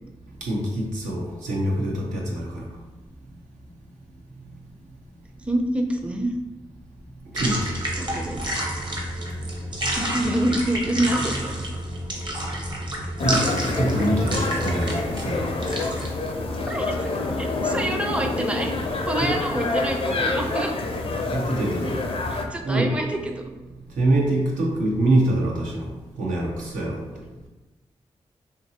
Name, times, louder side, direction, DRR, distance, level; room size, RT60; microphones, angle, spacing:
voice 1, 0.4-2.7 7.3-7.7 13.2-15.5 19.2-19.4 21.3-22.0 22.7-22.9 24.0-25.9 26.2-27.0, right 1 dB, 85° right, -2 dB, 0.6 m, -24 dB
voice 2, 5.5-6.3 8.0-8.4 10.0-11.6 16.7-18.7 19.1-20.7 22.3-23.4, right 1 dB, 10° right, 3 dB, 0.4 m, -26 dB
sound 1, 7.4-16.1, right 1 dB, 40° right, 0.8 m, -29 dB
sound 2, 13.2-22.4, left 3 dB, 50° left, 0.4 m, -27 dB
2.8 x 2.5 x 2.7 m, 1.1 s
supercardioid pair, 40°, 13 cm